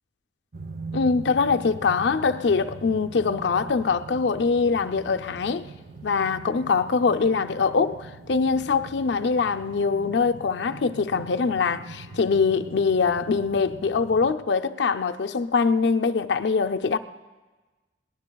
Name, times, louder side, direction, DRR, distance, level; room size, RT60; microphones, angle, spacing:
sound 1, 0.5-14.3, right 3 dB, 60° right, 0.8 m, -41 dB
voice 1, 0.9-5.7 6.0-17.0, left 5 dB, 70° left, 0.5 m, -23 dB
21.5 x 19.0 x 2.3 m
head